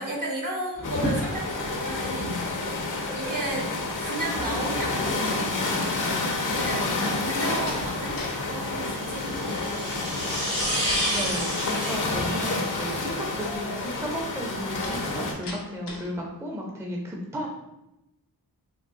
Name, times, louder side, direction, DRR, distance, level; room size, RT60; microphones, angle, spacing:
voice 1, 0.0-2.8 3.1-3.7 4.0-6.0 6.5-10.1, right 2 dB, 55° right, -2 dB, 1.0 m, -34 dB
sound 1, 0.8-15.3, left 3 dB, 50° left, 0.6 m, -29 dB
sound 2, 0.8-14.1, equal, 85° right, 1.5 m, -34 dB
Slam, 7.6-8.4 8.7-9.2 14.8-16.2, left 2 dB, 85° left, 0.7 m, -40 dB
voice 2, 11.1-17.5, equal, 5° right, -1 dB, 0.5 m, -34 dB
3.8 x 2.1 x 2.6 m, 0.93 s
cardioid pair, 45°, 39 cm